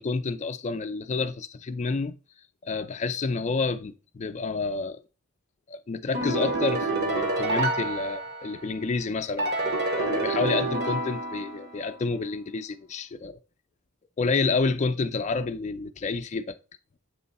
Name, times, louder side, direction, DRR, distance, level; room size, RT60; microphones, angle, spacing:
voice 1, 0.0-2.2 2.6-5.0 5.7-13.4 14.2-16.6, left 4 dB, 35° left, 0.4 m, -29 dB
sound 1, 6.1-8.8 9.4-11.9, right 2 dB, 50° right, 1.1 m, -28 dB
7.8 x 3.1 x 4.0 m
head